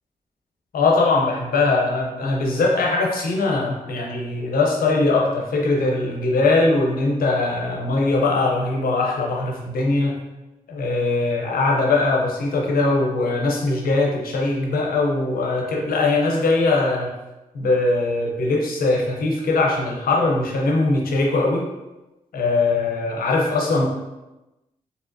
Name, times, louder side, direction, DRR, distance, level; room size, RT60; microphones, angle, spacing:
voice 1, 0.7-10.2 10.7-17.1 17.5-21.7 22.3-23.9, left 3 dB, 80° left, -1 dB, 0.7 m, -21 dB
3.3 x 2.8 x 2.6 m, 1.0 s
cardioid pair, 60°, 15 cm